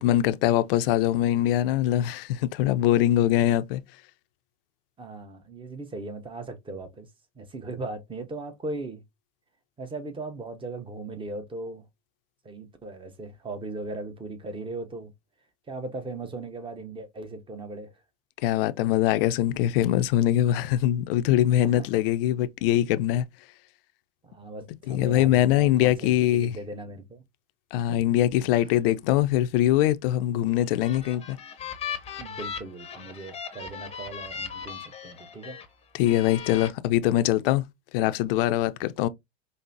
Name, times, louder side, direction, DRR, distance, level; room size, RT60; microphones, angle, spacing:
voice 1, 0.0-3.8 18.4-23.2 24.9-26.6 27.7-31.4 35.9-37.7 37.9-39.1, left 13 dB, 60° left, 0.5 m, -23 dB
voice 2, 5.0-7.1 7.4-9.0 9.8-11.8 12.4-15.1 15.7-17.9 21.6-21.9 24.2-27.2 27.9-28.0 28.6-28.7 32.2-35.6, right 2 dB, 15° right, 0.9 m, -38 dB
sound 1, 30.6-35.7 36.1-36.7, left 7 dB, 20° left, 0.7 m, -38 dB
5.2 x 2.0 x 2.7 m
hypercardioid pair, 90°, 32 cm